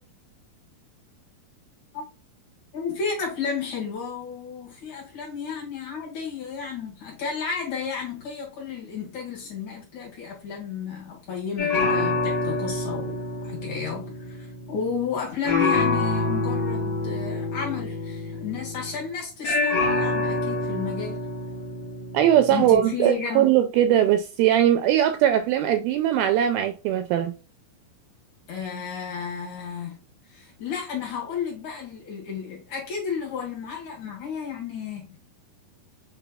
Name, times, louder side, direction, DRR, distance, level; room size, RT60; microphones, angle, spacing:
voice 1, 2.7-21.2 22.5-23.5 28.5-30.0 30.3-35.2, left 6 dB, 55° left, 2.5 m, -32 dB
sound 1, 11.6-15.1 15.4-19.0 19.4-22.7, left 2 dB, 90° left, 0.9 m, -27 dB
voice 2, 22.1-27.3, right 11 dB, 85° right, 2.2 m, -20 dB
6.0 x 3.3 x 2.3 m
omnidirectional pair, 4.6 m